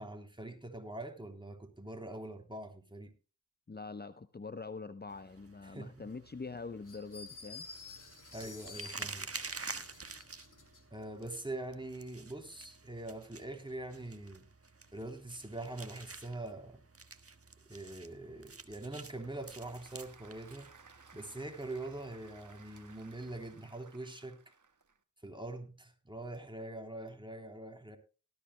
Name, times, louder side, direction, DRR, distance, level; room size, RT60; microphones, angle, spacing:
voice 1, 0.0-3.1 5.6-5.9 8.3-9.5 9.9-10.0 10.9-14.5 14.9-16.8 17.7-20.7 21.1-24.4 25.2-28.0, right 2 dB, 15° right, 3.4 m, -43 dB
voice 2, 3.7-7.7, left 4 dB, 30° left, 0.7 m, -44 dB
sound 1, 5.1-23.6, right 4 dB, 45° right, 1.4 m, -50 dB
sound 2, 6.9-10.8, left 4 dB, 75° left, 2.6 m, -51 dB
Applause / Crowd, 18.9-25.0, right 4 dB, 70° right, 1.6 m, -60 dB
18.5 x 14.0 x 2.2 m
wide cardioid pair, 50°, 32 cm